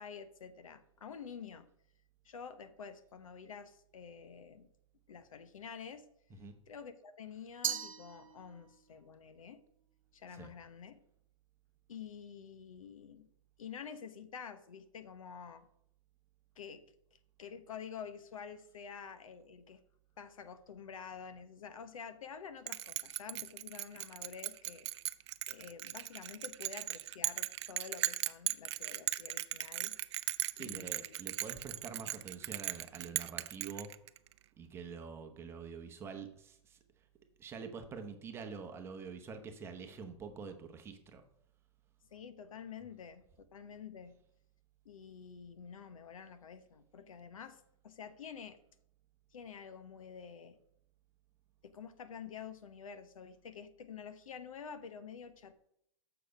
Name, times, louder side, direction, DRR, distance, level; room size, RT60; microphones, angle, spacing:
voice 1, 0.0-1.7 2.2-4.7 5.1-6.1 6.7-9.6 10.1-11.0 11.9-13.3 13.6-15.7 16.6-19.8 20.2-24.9 25.5-30.0 30.6-31.2 42.1-43.2 43.5-44.1 44.8-48.6 49.3-50.6 51.6-55.5, left 7 dB, 90° left, 10 dB, 1.1 m, -49 dB
Glass, 7.6-8.9, right 8 dB, 90° right, 0.8 m, -39 dB
Bell, 22.7-34.3, right 13 dB, 55° right, 0.5 m, -38 dB
voice 2, 30.5-33.9 34.6-36.8 37.4-41.2, right 5 dB, 15° right, 6 dB, 0.8 m, -46 dB
6.7 x 6.6 x 5.2 m, 0.73 s
hypercardioid pair, 150°, 17 cm